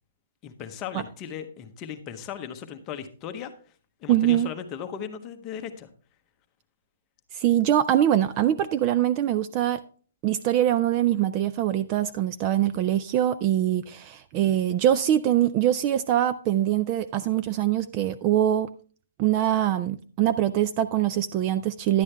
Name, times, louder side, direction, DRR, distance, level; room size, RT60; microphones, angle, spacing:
voice 1, 0.4-3.5 4.0-5.9, left 8 dB, 20° left, 0.8 m, -37 dB
voice 2, 4.1-4.5 7.3-9.8 10.2-18.7 19.2-22.0, right 12 dB, 25° right, 0.3 m, -23 dB
10.5 x 8.3 x 3.3 m
hypercardioid pair, 165°, 0 cm